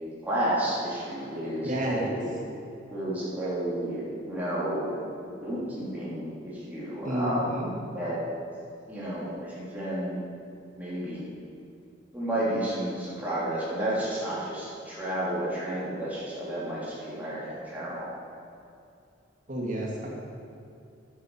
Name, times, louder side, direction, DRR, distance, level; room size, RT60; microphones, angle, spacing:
voice 1, 0.2-2.3 2.9-5.1 5.4-8.2 8.9-10.2 10.7-11.3 12.1-18.1, right 1 dB, 10° right, -9 dB, 3.2 m, -31 dB
voice 2, 1.6-2.2 7.0-7.7 19.5-20.1, right 1 dB, 40° right, -3 dB, 2.3 m, -30 dB
10.5 x 8.1 x 7.2 m, 2.6 s
head